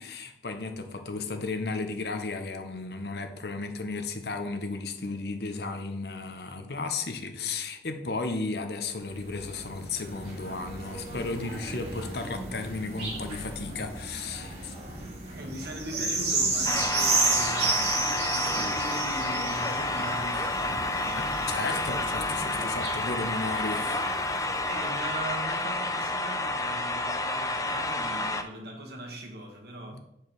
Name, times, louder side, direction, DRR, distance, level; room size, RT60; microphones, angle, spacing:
voice 1, 0.0-14.7 21.5-24.2 29.9-30.0, left 3 dB, 65° left, 7 dB, 0.9 m, -34 dB
sound 1, 9.0-24.9 25.5-25.6, right 3 dB, 35° right, 1.9 m, -33 dB
voice 2, 15.3-21.3 22.5-22.8 23.1-23.6 24.7-30.0, right 1 dB, 60° right, 1 dB, 1.6 m, -40 dB
sound 2, 16.7-28.4, left 2 dB, 20° left, 0.4 m, -30 dB
8.6 x 4.7 x 4.6 m, 0.83 s
head